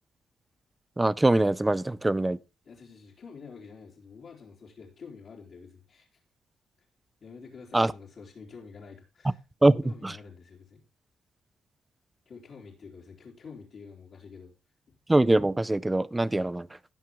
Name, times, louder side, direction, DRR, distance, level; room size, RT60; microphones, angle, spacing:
voice 1, 1.0-2.4 7.7-7.9 9.6-10.1 15.1-16.7, right 2 dB, 15° right, 0.5 m, -23 dB
voice 2, 2.6-6.2 7.2-9.4 9.8-10.8 12.3-14.5 14.9-15.0, left 5 dB, 50° left, 3.4 m, -48 dB
18.0 x 5.9 x 3.5 m
cardioid pair, 90°, 0 cm